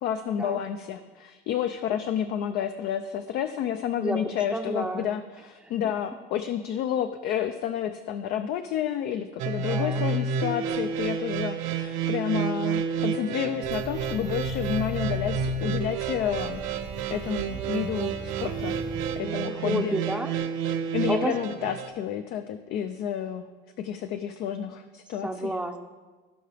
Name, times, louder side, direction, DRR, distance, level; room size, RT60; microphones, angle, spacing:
voice 1, 0.0-16.6 17.1-18.8 19.2-20.0 20.9-23.5 23.8-25.6, left 9 dB, 55° left, 8 dB, 0.4 m, -30 dB
voice 2, 4.0-5.1 5.6-5.7 9.7-10.0 19.2-20.3 21.1-21.3 25.2-25.8, right 1 dB, 5° right, 5 dB, 0.6 m, -31 dB
sound 1, 9.4-21.9, right 5 dB, 80° right, 0.9 m, -30 dB
sound 2, 13.6-19.2, right 6 dB, 45° right, 0.9 m, -39 dB
16.0 x 5.5 x 3.4 m, 1.3 s
cardioid pair, 140°, 20 cm